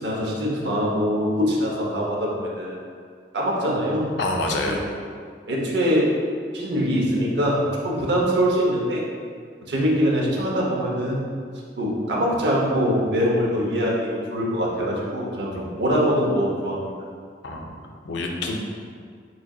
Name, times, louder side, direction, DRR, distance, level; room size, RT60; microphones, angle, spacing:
voice 1, 0.0-2.8 3.3-4.1 4.6-4.8 5.5-6.1 6.5-9.0 9.7-11.2 11.8-16.9, equal, 75° right, -3 dB, 0.7 m, -23 dB
voice 2, 4.2-4.9 15.5-15.7 17.4-17.7 18.0-18.6, left 2 dB, 80° left, 1 dB, 0.4 m, -27 dB
3.7 x 3.1 x 2.3 m, 2.1 s
head